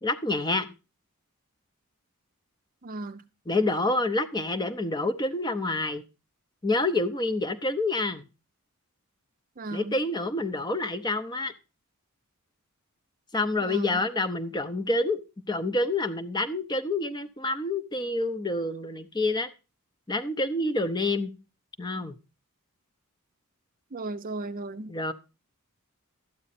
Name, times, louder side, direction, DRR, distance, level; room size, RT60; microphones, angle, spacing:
voice 1, 0.0-0.7 3.5-6.0 6.6-8.2 9.7-11.5 13.3-15.2 15.5-19.5 20.1-21.3 21.8-22.1 24.9-25.1, left 2 dB, 20° left, 0.7 m, -27 dB
voice 2, 2.8-3.2 9.6-10.0 13.6-14.0 23.9-24.9, right 2 dB, 40° right, 0.6 m, -36 dB
12.0 x 8.7 x 4.2 m
head